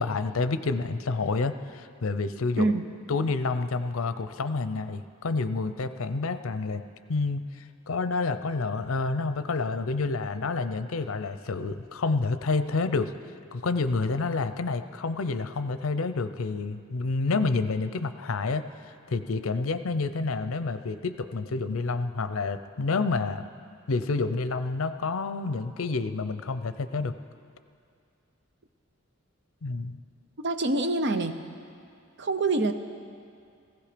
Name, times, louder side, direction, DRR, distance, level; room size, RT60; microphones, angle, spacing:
voice 1, 0.0-2.7 3.1-6.8 7.1-13.1 13.5-18.6 19.1-23.4 23.9-27.1 29.6-30.0, left 3 dB, 75° left, 11 dB, 0.6 m, -29 dB
voice 2, 30.4-31.4 32.2-32.7, right 2 dB, 55° right, 8 dB, 0.7 m, -25 dB
16.0 x 15.5 x 5.1 m, 2.4 s
head